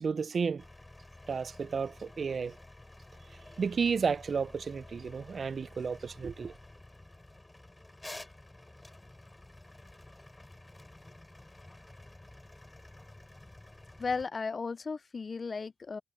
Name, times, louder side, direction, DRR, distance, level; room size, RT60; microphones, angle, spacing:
voice 1, 0.0-0.6 1.3-2.6 3.6-6.5, right 5 dB, 40° right, 0.3 m, -32 dB
sound 1, 0.6-14.3, left 1 dB, 10° left, 6.0 m, -51 dB
voice 2, 14.0-16.0, left 4 dB, 35° left, 0.4 m, -35 dB
cardioid pair, 90°, 0 cm